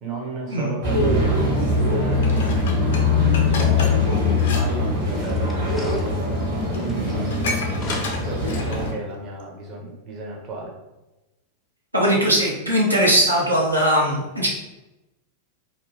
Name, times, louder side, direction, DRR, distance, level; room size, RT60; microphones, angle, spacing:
voice 1, 0.0-1.4 1.9-2.9 3.4-6.4 6.7-7.4 8.2-10.7, right 3 dB, 35° right, 0 dB, 0.7 m, -33 dB
sound 1, 0.8-8.9, left 3 dB, 60° right, 1.3 m, -21 dB
Dishes pots and pans, 2.2-4.7 4.9-5.2 6.0-6.1 6.4-6.5 6.7-9.0 9.4-9.5, left 2 dB, 60° left, 0.5 m, -32 dB
sound 2, 5.0-7.4 7.7-8.5, left 1 dB, 5° left, 0.5 m, -40 dB
voice 2, 11.9-14.5, equal, 85° right, -3 dB, 0.6 m, -19 dB
2.6 x 2.3 x 3.1 m, 1.0 s
figure-of-eight pair, 90°, 0 cm